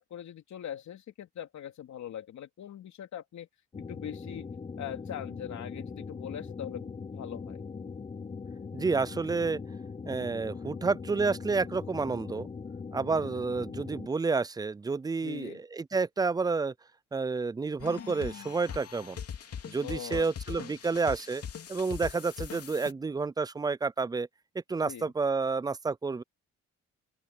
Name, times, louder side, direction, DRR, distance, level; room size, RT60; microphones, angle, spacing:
voice 1, 0.0-3.5 3.8-4.5 4.8-7.6 15.2-15.6 19.8-20.8 24.8-25.1, left 10 dB, 65° left, 3.2 m, -42 dB
sound 1, 3.7-14.1, left 5 dB, 20° left, 0.6 m, -41 dB
voice 2, 8.7-9.6 10.1-12.5 12.9-16.7 17.1-19.2 19.7-21.4 21.7-24.3 24.7-26.2, right 4 dB, 15° right, 0.3 m, -30 dB
sound 2, 17.8-22.9, left 7 dB, 50° left, 2.9 m, -41 dB
open air
cardioid pair, 90°, 30 cm